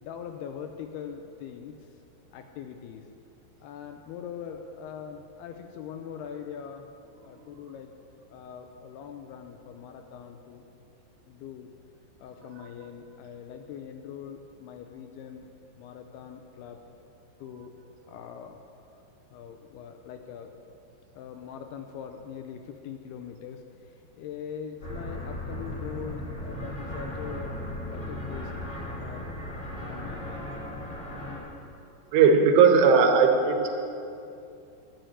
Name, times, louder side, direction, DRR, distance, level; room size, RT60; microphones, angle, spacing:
voice 1, 0.0-1.7 2.3-3.0 3.6-6.9 7.2-7.9 8.3-10.6 11.3-11.7 12.2-15.5 15.8-16.8 17.4-17.7 18.1-18.6 19.3-20.6 21.2-23.6 24.2-27.5 27.9-28.5 29.0-29.3 29.9-30.5, left 8 dB, 80° left, 5 dB, 2.4 m, -42 dB
sound 1, 24.8-31.4, left 1 dB, 25° left, 2.1 m, -36 dB
voice 2, 32.1-33.7, right 5 dB, 75° right, 4 dB, 3.1 m, -18 dB
11.0 x 7.8 x 9.4 m, 2.6 s
omnidirectional pair, 5.1 m